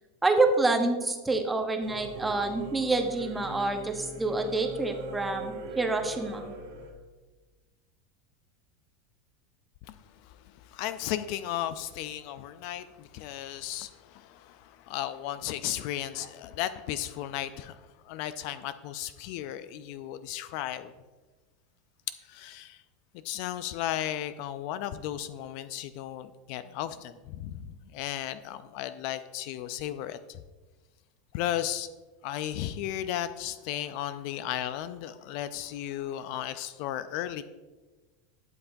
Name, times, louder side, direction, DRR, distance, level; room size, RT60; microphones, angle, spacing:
voice 1, 0.2-6.4, right 3 dB, 10° right, 5 dB, 1.0 m, -27 dB
Singing / Musical instrument, 1.8-6.9, right 3 dB, 75° right, 2.6 m, -40 dB
voice 2, 10.2-20.9 22.3-22.8 23.2-30.4 31.3-31.9 32.2-37.4, left 12 dB, 60° left, 12 dB, 0.4 m, -35 dB
11.5 x 5.8 x 2.6 m, 1.2 s
hypercardioid pair, 105°, 0 cm